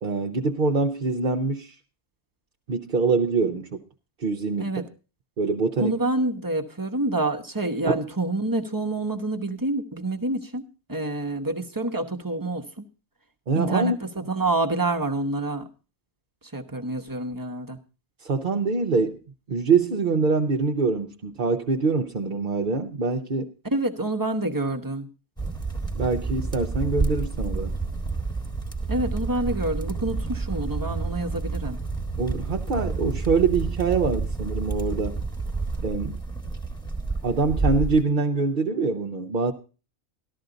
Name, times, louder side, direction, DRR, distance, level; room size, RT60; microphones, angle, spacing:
voice 1, 0.0-1.8 2.7-3.8 4.2-4.8 5.4-6.0 7.8-8.0 13.5-14.0 18.2-19.2 19.5-23.5 25.9-27.7 32.2-35.2 35.8-36.2 37.2-39.5, right 4 dB, 45° right, 2 dB, 0.8 m, -24 dB
voice 2, 4.6-4.9 5.8-10.6 10.9-12.9 13.5-15.7 16.5-17.8 23.6-25.1 28.9-31.8, right 2 dB, 15° right, 4 dB, 0.9 m, -27 dB
sound 1, 25.4-38.0, right 4 dB, 5° left, 1.3 m, -29 dB
13.5 x 12.5 x 3.9 m, 0.34 s
omnidirectional pair, 1.4 m